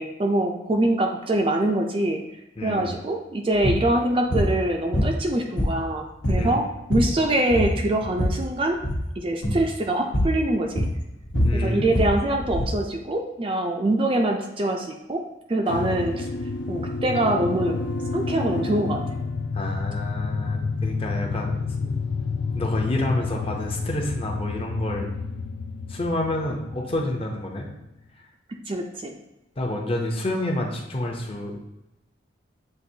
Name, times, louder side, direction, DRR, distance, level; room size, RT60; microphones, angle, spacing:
voice 1, 0.0-2.2 2.6-6.6 6.9-8.8 9.2-10.8 11.5-15.2 15.5-16.3 16.7-17.8 18.1-19.0 28.7-29.1, right 1 dB, 30° right, 2 dB, 0.4 m, -24 dB
voice 2, 2.6-2.9 6.3-6.6 11.4-11.9 19.5-22.0 22.5-25.1 25.9-27.7 29.6-31.6, left 1 dB, 30° left, 0 dB, 0.7 m, -28 dB
sound 1, 3.6-3.8 4.3-4.5 4.9-5.9 6.2-6.5 6.8-7.2 7.5-8.4 8.8-9.1 9.4-9.7 10.1-10.4 10.8-12.8, equal, 85° left, 1.2 m, -24 dB
sound 2, 15.7-27.9, left 4 dB, 65° left, 0.4 m, -30 dB
7.5 x 2.5 x 2.7 m, 0.93 s
head